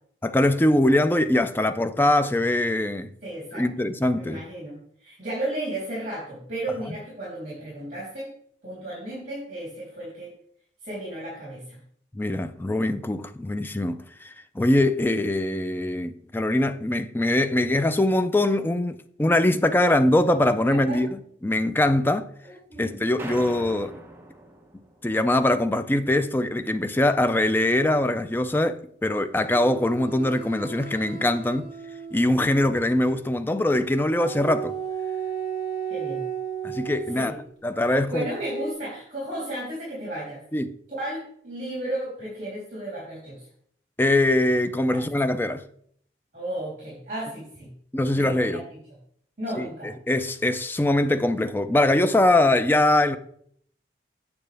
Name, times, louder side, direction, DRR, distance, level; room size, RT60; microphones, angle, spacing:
voice 1, 0.2-3.1 3.5-4.4 12.1-22.3 22.8-23.9 25.0-31.7 32.1-34.7 36.6-37.4 37.6-38.3 40.5-40.7 44.0-45.6 47.9-48.6 49.6-53.2, left 1 dB, 10° left, 0.4 m, -22 dB
voice 2, 3.2-3.6 4.1-8.3 8.6-10.3 10.8-11.8 20.7-21.0 22.4-23.0 35.9-36.2 37.1-37.4 37.9-40.4 41.0-43.5 44.9-45.0 46.3-47.7 48.1-48.6 49.4-49.9, right 1 dB, 45° right, 3.3 m, -34 dB
sound 1, 23.2-25.2, right 1 dB, 15° right, 0.8 m, -40 dB
sound 2, 29.5-33.0 34.1-37.3 38.4-38.7, right 7 dB, 40° left, 2.1 m, -34 dB
8.8 x 6.8 x 3.4 m
head